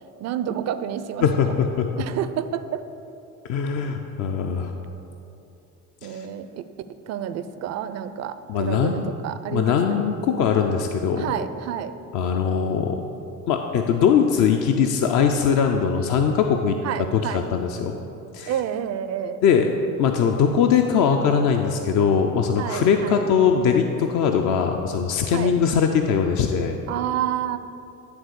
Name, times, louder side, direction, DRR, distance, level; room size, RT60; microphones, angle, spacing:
voice 1, 0.2-1.2 2.0-2.8 6.0-6.7 7.1-10.0 11.2-11.9 16.8-17.4 18.5-19.4 22.6-23.2 25.3-25.5 26.9-27.6, right 10 dB, 40° right, 11 dB, 0.5 m, -29 dB
voice 2, 1.2-1.9 3.5-4.7 6.0-6.3 8.5-9.1 9.5-11.3 12.1-13.0 13.5-16.8 17.1-17.9 18.3-18.5 19.4-19.7 20.0-26.8, left 7 dB, 45° left, 4 dB, 0.6 m, -21 dB
11.0 x 3.7 x 6.7 m, 2.8 s
hypercardioid pair, 65°, 44 cm